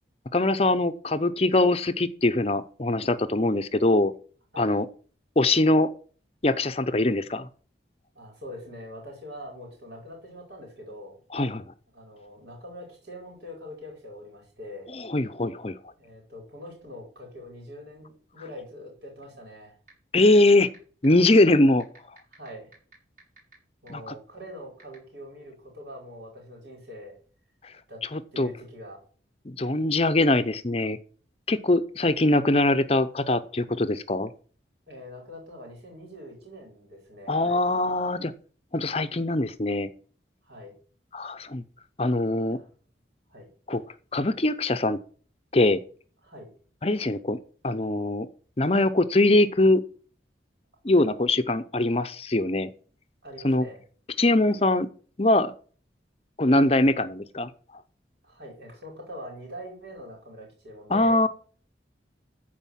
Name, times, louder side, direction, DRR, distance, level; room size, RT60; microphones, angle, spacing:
voice 1, 0.3-4.1 4.6-4.9 5.4-5.9 6.4-7.5 11.3-11.6 14.9-15.8 20.1-20.7 21.0-21.8 23.9-24.1 28.1-28.5 29.5-31.0 31.5-34.3 37.3-38.3 38.7-39.9 41.1-41.6 42.0-42.6 43.7-43.8 44.1-45.0 45.5-45.8 46.8-47.4 47.6-48.3 48.6-49.8 50.8-52.7 53.4-53.6 54.2-54.9 55.2-55.5 56.4-57.5 60.9-61.3, left 2 dB, 35° left, 12 dB, 0.7 m, -22 dB
voice 2, 8.1-11.2 11.9-14.9 16.0-19.7 22.3-22.7 23.8-27.1 27.9-28.0 28.3-29.0 34.9-37.6 40.4-40.7 42.5-42.7 43.3-43.5 46.2-46.5 51.0-51.1 53.2-53.8 58.2-61.2, equal, 70° right, 0 dB, 5.1 m, -43 dB
sound 1, 19.9-20.0 20.3-20.8 21.0-21.1 21.8-23.5 23.9-24.0 24.8-25.0, right 3 dB, 45° right, 6.0 m, -51 dB
14.0 x 5.0 x 7.3 m, 0.43 s
head